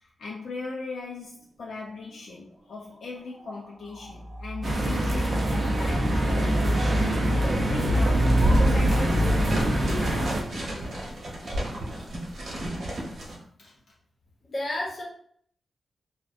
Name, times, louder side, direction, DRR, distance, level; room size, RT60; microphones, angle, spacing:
voice 1, 0.2-7.1 7.7-8.2 8.5-9.9 13.6-13.7, left 3 dB, 75° left, -3 dB, 0.3 m, -38 dB
sound 1, 3.3-3.6 3.9-8.9, equal, 10° right, 0.8 m, -28 dB
sound 2, 4.6-10.4, right 1 dB, 35° right, 0.4 m, -24 dB
voice 2, 5.6-6.4 8.9-9.1 14.5-15.0, left 1 dB, 45° left, -3 dB, 0.8 m, -34 dB
sound 3, 8.2-13.4, right 1 dB, 65° right, 0.9 m, -35 dB
2.6 x 2.0 x 2.5 m, 0.62 s
wide cardioid pair, 150°, 0 cm